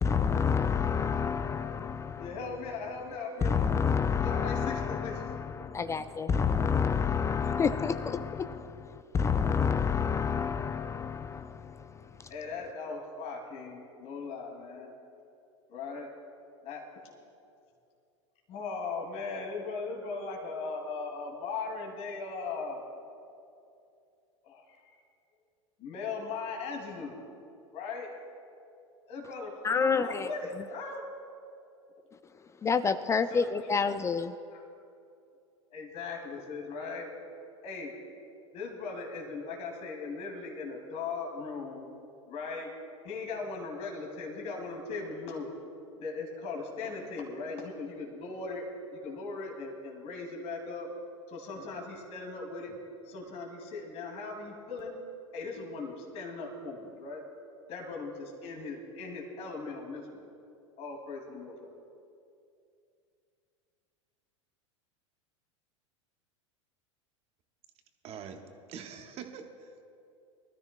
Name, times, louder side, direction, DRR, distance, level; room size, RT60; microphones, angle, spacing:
voice 1, 0.0-2.3 3.4-12.3 29.6-30.3 32.6-34.3, left 6 dB, 20° left, 12 dB, 0.4 m, -29 dB
voice 2, 2.2-3.6 4.2-5.1 12.3-14.9 15.7-16.1 16.6-17.2 18.5-22.8 24.4-25.0 25.8-27.2 27.7-28.1 29.1-31.1 33.3-33.5 34.5-34.6 35.7-37.1 37.6-37.9 38.5-41.9 42.3-42.7 43.0-45.5 46.0-48.7 48.9-50.9 51.3-52.8 53.0-54.9 55.3-57.2 57.7-60.2 60.8-61.7, left 4 dB, 40° left, 0 dB, 2.4 m, -38 dB
voice 3, 68.0-68.4 68.7-69.8, right 7 dB, 40° right, 5 dB, 1.3 m, -44 dB
23.5 x 13.0 x 2.2 m, 2.6 s
hypercardioid pair, 90°, 16 cm